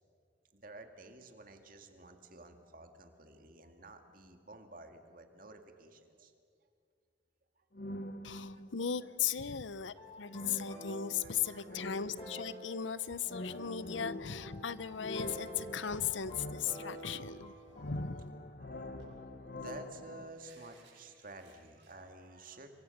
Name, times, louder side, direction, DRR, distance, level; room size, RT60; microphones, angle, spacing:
voice 1, 0.5-6.3 7.6-7.7 8.2-8.7 11.2-12.1 12.4-12.5 18.6-22.7, right 2 dB, 50° right, 6 dB, 2.1 m, -52 dB
sound 1, 7.7-9.0 10.3-12.8 13.3-17.4 17.7-20.3, left 1 dB, 55° left, 1.0 m, -45 dB
voice 2, 8.2-17.6 17.8-18.2, left 8 dB, 90° left, 17 dB, 0.8 m, -37 dB
sound 2, 9.8-17.8, equal, 30° left, 7.2 m, -50 dB
sound 3, 18.4-18.5 19.0-21.9, right 3 dB, 65° right, 6.7 m, -64 dB
27.5 x 23.5 x 6.7 m, 2.2 s
head